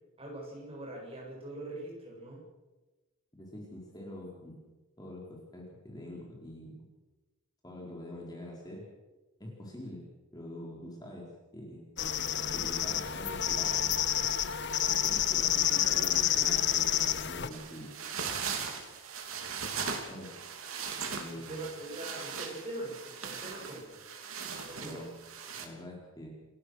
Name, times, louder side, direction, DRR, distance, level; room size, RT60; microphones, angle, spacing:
voice 1, 0.2-2.4 21.3-24.1 24.6-25.1, right 1 dB, 25° right, -2 dB, 7.7 m, -42 dB
voice 2, 3.3-4.6 5.0-6.9 7.6-8.9 9.4-10.0 10.3-11.9 12.3-13.9 14.8-18.0 20.1-20.4 21.1-21.7 24.8-25.1 25.6-26.3, left 1 dB, 20° left, -2 dB, 4.4 m, -45 dB
sound 1, 12.0-17.5, left 11 dB, 55° left, 1.0 m, -29 dB
sound 2, 17.5-25.7, right 6 dB, 75° right, 3.1 m, -39 dB
28.5 x 16.5 x 6.6 m, 1.2 s
head